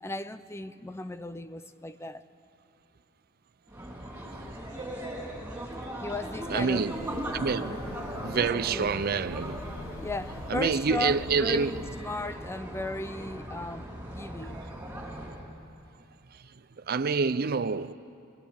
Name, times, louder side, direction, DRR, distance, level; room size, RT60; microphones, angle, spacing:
voice 1, 0.0-2.2 6.0-6.9 8.0-8.1 8.3-9.1 10.0-14.7, left 2 dB, 10° left, 0.5 m, -36 dB
sound 1, 3.7-15.5, right 1 dB, 10° right, 4.2 m, -39 dB
voice 2, 6.5-7.0 7.3-7.7 8.1-9.6 10.5-11.7 16.9-17.9, right 5 dB, 45° right, 0.5 m, -27 dB
Breathing / Train, 6.7-12.2, left 4 dB, 70° left, 0.6 m, -44 dB
25.5 x 19.5 x 8.0 m
head